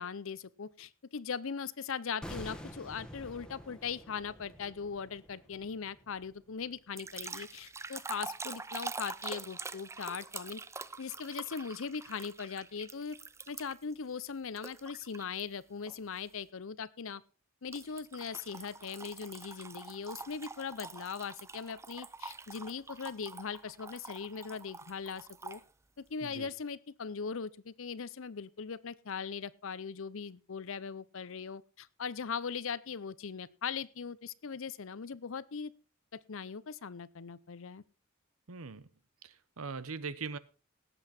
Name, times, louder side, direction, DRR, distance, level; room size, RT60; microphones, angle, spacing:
voice 1, 0.0-10.6 11.0-13.2 13.5-17.2 17.6-25.6 26.0-35.7 36.3-37.8, left 6 dB, 70° left, 0.7 m, -40 dB
sound 1, 2.2-7.2 7.5-7.7, equal, 5° left, 1.5 m, -49 dB
sound 2, 7.0-13.9 14.6-15.4 15.9-16.2 17.7-25.6, right 4 dB, 15° right, 0.5 m, -45 dB
voice 2, 38.5-38.9 39.2-40.4, right 4 dB, 85° right, 0.9 m, -41 dB
18.0 x 8.0 x 4.3 m
head